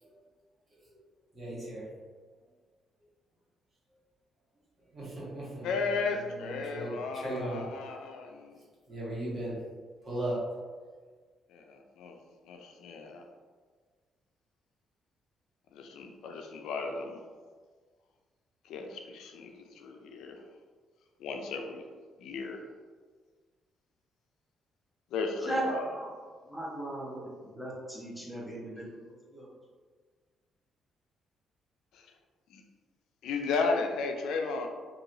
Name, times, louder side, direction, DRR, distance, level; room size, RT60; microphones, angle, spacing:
voice 1, 1.3-1.8 4.9-5.7 6.2-7.6 8.9-9.6 10.0-10.4, right 1 dB, 35° right, -8 dB, 1.5 m, -37 dB
voice 2, 5.6-8.6 11.5-12.2 12.5-13.2 15.7-17.2 18.6-20.4 21.2-21.9 22.2-22.6 25.1-25.9 31.9-32.1 32.5-32.6 33.2-34.7, left 4 dB, 85° left, 3 dB, 0.3 m, -35 dB
voice 3, 25.4-26.1 26.4-28.8 29.1-29.5, right 1 dB, ahead, -6 dB, 0.9 m, -37 dB
2.9 x 2.7 x 2.6 m, 1.5 s
cardioid pair, 90°, 0 cm